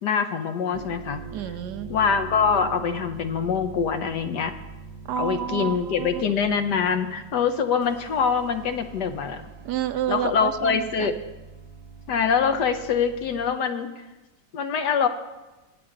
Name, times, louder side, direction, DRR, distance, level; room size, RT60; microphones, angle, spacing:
voice 1, 0.0-1.2 1.9-4.5 5.2-9.5 10.1-11.2 12.1-14.0 14.5-15.1, left 6 dB, 70° left, 8 dB, 1.4 m, -24 dB
sound 1, 0.6-13.5, right 4 dB, 25° right, 0.6 m, -43 dB
voice 2, 1.3-1.9 5.1-6.2 9.6-11.1, right 10 dB, 75° right, 11 dB, 1.1 m, -30 dB
23.5 x 7.9 x 3.9 m, 1.1 s
omnidirectional pair, 2.0 m